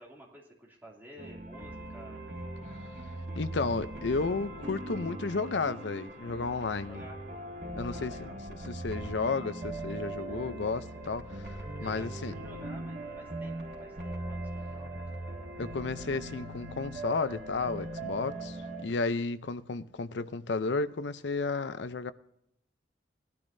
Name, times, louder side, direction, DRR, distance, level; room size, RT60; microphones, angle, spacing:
voice 1, 0.0-2.3 6.8-7.2 7.8-8.4 11.8-15.0, right 1 dB, 10° right, 2.7 m, -51 dB
sound 1, 1.2-18.9, right 2 dB, 40° right, 0.9 m, -40 dB
sound 2, 1.5-18.6, equal, 60° right, 3.3 m, -52 dB
voice 2, 3.4-7.0 7.8-12.3 15.6-22.1, left 4 dB, 75° left, 0.6 m, -33 dB
18.0 x 12.0 x 2.7 m
head